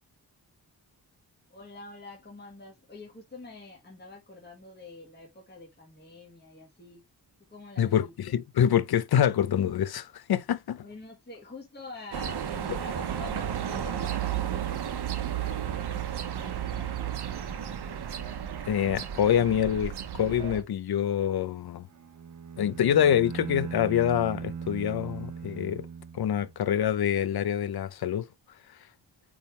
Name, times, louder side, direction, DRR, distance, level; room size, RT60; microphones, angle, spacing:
voice 1, 1.5-7.1 7.5-8.5 10.8-17.4, left 3 dB, 25° left, 1.8 m, -47 dB
voice 2, 7.8-10.8 18.6-21.9 22.6-25.9 26.1-28.3, left 9 dB, 70° left, 0.7 m, -26 dB
sound 1, 12.1-20.6, right 10 dB, 75° right, 1.0 m, -33 dB
Bowed string instrument, 21.9-26.7, right 6 dB, 45° right, 0.8 m, -39 dB
8.7 x 3.6 x 3.2 m
wide cardioid pair, 180°, 40 cm